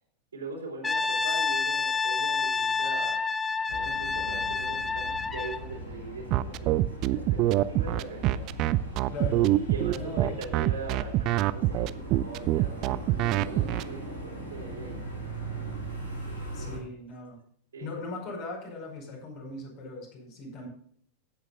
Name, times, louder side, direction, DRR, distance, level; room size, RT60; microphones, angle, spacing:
voice 1, 0.3-3.2 3.7-8.4 9.7-15.0 16.3-16.8 17.7-17.9, right 3 dB, 70° right, 0 dB, 3.6 m, -41 dB
Brass instrument, 0.8-5.7, left 4 dB, 10° left, 0.6 m, -28 dB
sound 1, 3.7-16.8, right 1 dB, 85° left, 5.2 m, -39 dB
sound 2, 6.3-13.8, right 15 dB, 40° right, 0.5 m, -25 dB
voice 2, 9.1-9.5 9.9-10.4 16.5-17.4 17.8-20.7, left 3 dB, 40° left, 0 dB, 5.2 m, -39 dB
16.5 x 8.3 x 2.5 m, 0.63 s
figure-of-eight pair, 90°, 0 cm